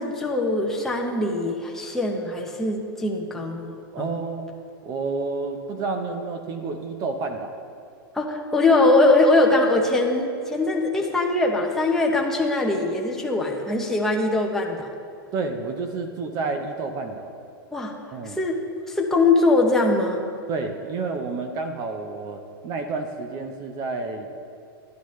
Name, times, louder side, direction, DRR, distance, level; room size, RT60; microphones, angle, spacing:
voice 1, 0.0-4.1 8.1-14.9 17.7-18.0 18.2-18.6 18.9-20.2, left 2 dB, 5° left, -1 dB, 0.8 m, -22 dB
voice 2, 3.9-4.5 4.9-7.6 15.3-17.3 18.1-18.4 20.5-24.4, right 3 dB, 30° right, 5 dB, 0.7 m, -30 dB
11.5 x 10.0 x 3.1 m, 2.4 s
supercardioid pair, 155°, 12 cm